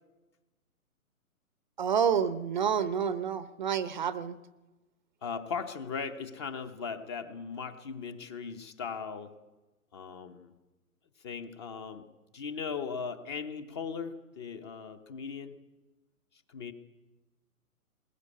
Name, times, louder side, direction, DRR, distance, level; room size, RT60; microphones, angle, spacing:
voice 1, 1.8-4.3, right 7 dB, 30° right, 15 dB, 0.7 m, -28 dB
voice 2, 5.2-9.3 9.9-10.5 11.2-12.0 12.3-15.6 16.5-16.7, left 5 dB, 20° left, 10 dB, 0.8 m, -38 dB
21.5 x 19.0 x 8.4 m, 1.1 s
figure-of-eight pair, 135°, 44 cm